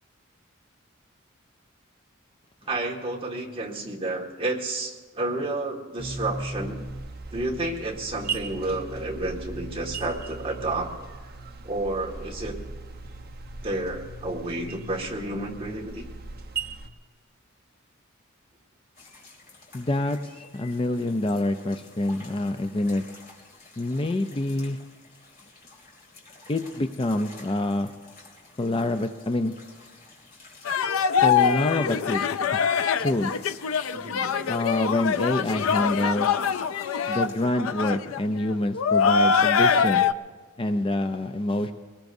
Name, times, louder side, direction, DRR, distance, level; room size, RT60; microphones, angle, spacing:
voice 1, 2.7-6.8 7.3-10.9 11.6-12.6 13.6-16.1 33.9-34.3, right 2 dB, 25° right, -2 dB, 1.8 m, -30 dB
sound 1, 6.0-16.9, right 3 dB, 50° right, 0.9 m, -38 dB
sound 2, 18.9-37.5, left 3 dB, 45° left, 2.8 m, -50 dB
voice 2, 19.7-20.2 20.5-23.0 23.8-24.8 26.5-27.9 28.6-29.5 31.2-32.5 33.0-33.3 34.5-36.3 37.1-40.1 40.6-41.7, left 1 dB, 25° left, 8 dB, 0.4 m, -26 dB
sound 3, 30.7-40.1, left 6 dB, 80° left, 0.5 m, -23 dB
23.5 x 19.0 x 2.7 m, 1.4 s
head